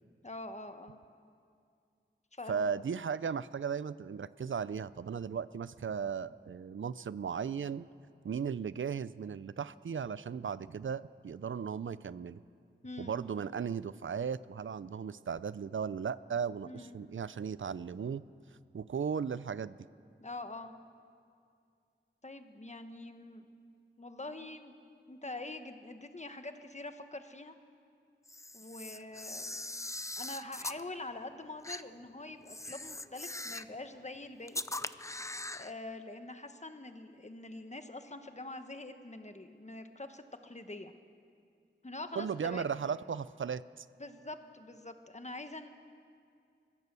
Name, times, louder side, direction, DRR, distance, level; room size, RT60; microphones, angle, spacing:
voice 1, 0.2-1.0 2.3-2.6 12.8-13.2 16.6-17.0 20.2-20.7 22.2-23.5 24.0-24.7 25.1-27.5 28.5-29.6 30.2-34.6 35.5-40.9 41.8-42.8 44.0-45.7, left 2 dB, 35° left, 8 dB, 1.3 m, -45 dB
voice 2, 2.5-7.9 8.2-12.4 13.0-18.2 18.7-19.8 42.2-43.9, right 6 dB, 80° right, 17 dB, 0.5 m, -36 dB
Camera, 28.3-30.8 31.6-31.8 32.5-33.8 34.5-35.7, left 2 dB, 15° left, 0.5 m, -41 dB
23.0 x 16.0 x 6.9 m, 2.3 s
wide cardioid pair, 60°, 20 cm